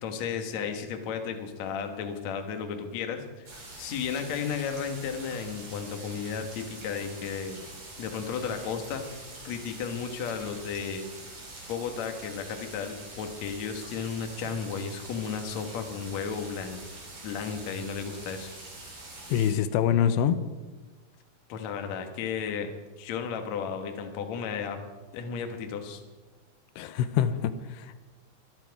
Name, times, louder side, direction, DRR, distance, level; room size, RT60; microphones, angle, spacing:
voice 1, 0.0-3.5 3.8-7.6 8.0-9.1 9.4-11.1 11.7-16.8 17.2-18.5 21.5-22.7 23.0-24.8 25.1-26.0, left 6 dB, 60° left, 5 dB, 2.0 m, -34 dB
sound 1, 3.5-19.5, right 2 dB, 40° right, 4.7 m, -45 dB
voice 2, 19.3-20.4 26.8-28.0, left 9 dB, 85° left, 12 dB, 2.8 m, -25 dB
24.0 x 9.7 x 4.7 m, 1.2 s
omnidirectional pair, 4.9 m